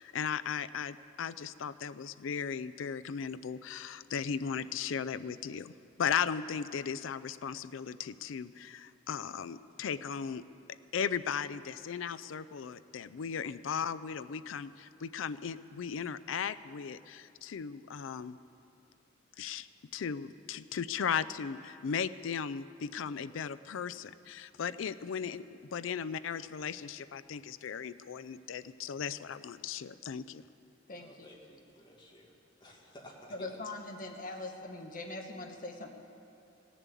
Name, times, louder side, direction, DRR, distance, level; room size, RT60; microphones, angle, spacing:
voice 1, 0.0-10.4 10.9-18.4 19.4-19.7 19.9-25.4 25.7-30.4, left 7 dB, 80° left, 15 dB, 0.4 m, -36 dB
voice 2, 30.9-32.3 32.6-33.6, left 1 dB, 25° left, -3 dB, 2.1 m, -54 dB
voice 3, 33.3-35.9, left 2 dB, 45° left, 3 dB, 1.2 m, -41 dB
17.0 x 7.3 x 8.2 m, 2.7 s
head